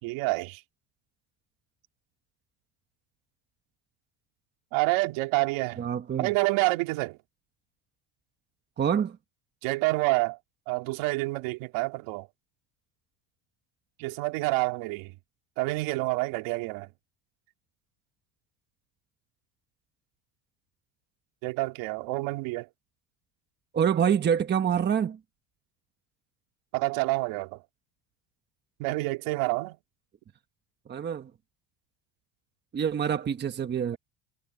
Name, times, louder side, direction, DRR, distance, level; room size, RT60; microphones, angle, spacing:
voice 1, 0.0-0.6 4.7-5.8 6.2-7.2 9.6-10.4 10.7-12.3 14.0-15.2 15.6-16.9 21.4-22.7 26.7-27.6 28.8-29.8, right 23 dB, 70° right, 2.4 m, -28 dB
voice 2, 5.8-6.3 8.8-9.2 23.7-25.2 30.9-31.3 32.7-34.0, right 8 dB, 20° right, 1.1 m, -26 dB
cardioid pair, 150°, 48 cm